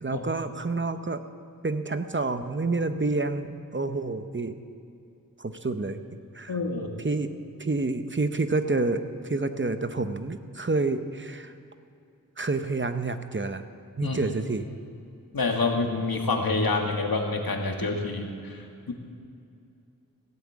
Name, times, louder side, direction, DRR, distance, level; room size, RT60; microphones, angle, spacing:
voice 1, 0.0-1.2 1.6-4.6 5.4-6.0 6.3-6.6 7.0-7.3 7.6-11.5 12.4-13.6 14.0-14.7, right 3 dB, 35° right, 9 dB, 0.8 m, -28 dB
voice 2, 6.5-6.9 14.0-14.2 15.3-18.9, left 3 dB, 90° left, 2 dB, 1.7 m, -27 dB
16.0 x 8.4 x 8.3 m, 2.5 s
wide cardioid pair, 65°, 35 cm